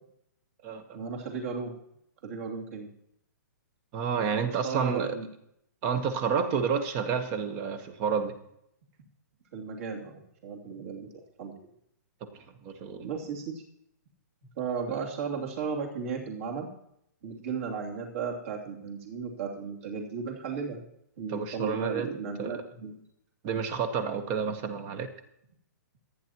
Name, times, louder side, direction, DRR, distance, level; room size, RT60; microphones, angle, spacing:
voice 1, 0.9-1.7 2.2-2.9 4.4-5.3 9.5-11.1 11.4-11.5 13.0-13.6 14.6-16.7 17.2-20.8 21.2-23.0, right 5 dB, 45° right, -1 dB, 2.9 m, -35 dB
voice 2, 3.9-5.1 5.8-8.4 12.2-13.1 21.3-22.1 22.4-22.6 23.4-25.1, right 6 dB, 25° right, 10 dB, 1.2 m, -30 dB
27.0 x 9.5 x 3.0 m, 0.74 s
hypercardioid pair, 170°, 10 cm